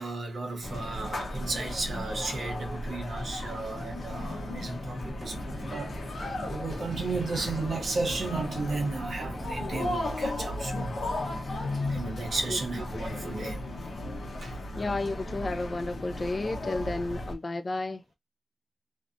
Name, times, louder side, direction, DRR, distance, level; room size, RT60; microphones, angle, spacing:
voice 1, 0.0-11.1 11.5-13.6 14.4-14.6, right 3 dB, 70° right, 0.8 m, -34 dB
sound 1, 0.6-17.3, left 1 dB, 65° left, 0.7 m, -35 dB
sound 2, 4.9-10.0, right 1 dB, 15° right, 0.5 m, -43 dB
voice 2, 14.7-18.0, left 2 dB, 35° left, 0.3 m, -32 dB
2.6 x 2.1 x 2.4 m
wide cardioid pair, 150°, 0 cm